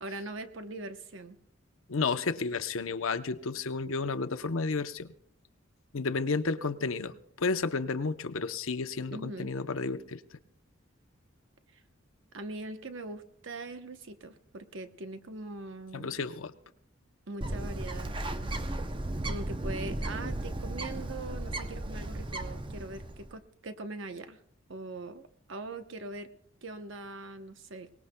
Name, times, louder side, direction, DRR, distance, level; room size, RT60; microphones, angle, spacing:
voice 1, 0.0-1.4 9.1-9.5 11.7-11.8 12.3-16.2 17.3-18.2 19.2-24.4 24.7-26.3 26.6-27.9, right 2 dB, 65° right, 9 dB, 0.9 m, -41 dB
voice 2, 1.9-5.1 5.9-10.2 15.9-16.5, left 4 dB, 80° left, 9 dB, 0.7 m, -32 dB
Bird, 17.4-23.3, right 1 dB, 25° right, 0.6 m, -35 dB
23.5 x 19.0 x 2.2 m, 0.70 s
head